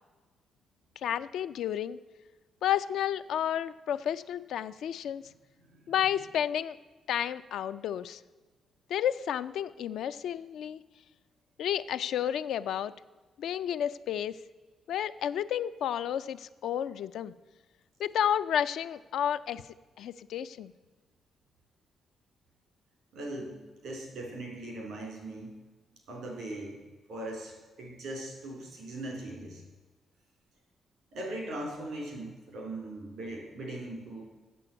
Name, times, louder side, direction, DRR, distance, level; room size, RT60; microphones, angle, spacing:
voice 1, 1.0-2.0 2.6-5.2 5.9-6.8 7.1-8.2 8.9-10.8 11.6-12.9 13.4-14.4 14.9-17.3 18.0-19.6 20.0-20.7, left 10 dB, 80° left, 12 dB, 0.4 m, -31 dB
voice 2, 5.6-6.0 23.1-25.5 26.1-26.8 27.1-29.6 31.1-34.2, right 1 dB, 85° right, 1 dB, 3.6 m, -40 dB
8.3 x 6.9 x 8.4 m, 1.2 s
cardioid pair, 75°, 0 cm